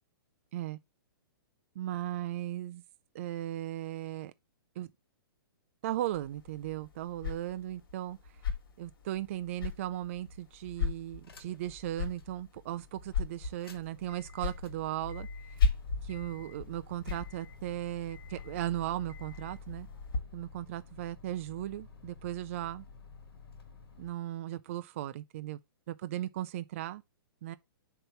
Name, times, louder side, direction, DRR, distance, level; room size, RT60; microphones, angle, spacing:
voice 1, 1.8-2.8 3.1-4.3 4.8-4.9 5.8-8.2 8.8-15.3 16.0-19.9 20.3-22.9 24.0-25.6 25.9-27.0 27.4-27.6, right 13 dB, 35° right, 0.3 m, -37 dB
sound 1, 6.1-20.2, left 5 dB, 65° left, 2.9 m, -38 dB
starting honda, 11.2-11.7 12.2-12.3 13.4-24.1, left 4 dB, 80° left, 1.9 m, -49 dB
6.7 x 3.0 x 5.6 m
hypercardioid pair, 165°, 12 cm